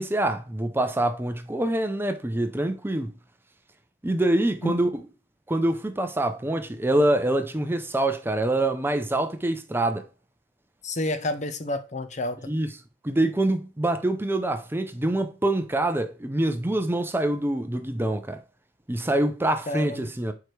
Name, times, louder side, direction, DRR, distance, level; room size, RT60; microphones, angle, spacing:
voice 1, 0.0-3.1 4.0-4.9 5.5-10.0 12.5-12.7 13.0-18.4 18.9-20.3, right 1 dB, 10° right, 0.5 m, -25 dB
voice 2, 10.8-12.5 19.7-20.1, left 1 dB, 40° left, 0.7 m, -29 dB
4.8 x 4.7 x 4.6 m
head